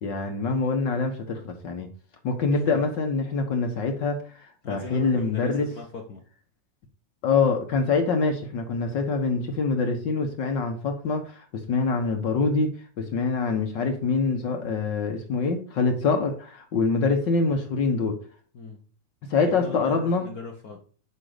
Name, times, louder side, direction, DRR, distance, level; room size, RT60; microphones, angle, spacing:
voice 1, 0.0-1.9 2.2-4.2 4.7-5.7 7.2-18.2 19.3-20.3, left 4 dB, 55° left, 5 dB, 1.4 m, -25 dB
voice 2, 2.5-2.8 4.6-6.2 18.5-18.8 19.6-20.8, left 4 dB, 75° left, 3 dB, 0.8 m, -38 dB
10.5 x 5.6 x 5.0 m, 0.41 s
omnidirectional pair, 3.3 m